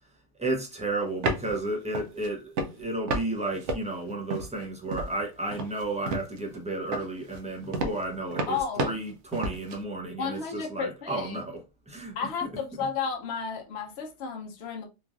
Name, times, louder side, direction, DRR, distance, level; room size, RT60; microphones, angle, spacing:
voice 1, 0.4-11.6 11.9-12.1, right 2 dB, 10° right, 0.4 m, -32 dB
sound 1, 1.0-1.6 1.9-2.3 2.6-3.3 3.5-4.6 4.9-5.2 5.5-6.6 6.9-9.8, right 2 dB, 80° right, 0.9 m, -31 dB
voice 2, 8.5-8.9 10.2-11.4 12.2-14.9, left 6 dB, 65° left, 0.9 m, -32 dB
3.0 x 2.5 x 2.4 m
omnidirectional pair, 1.2 m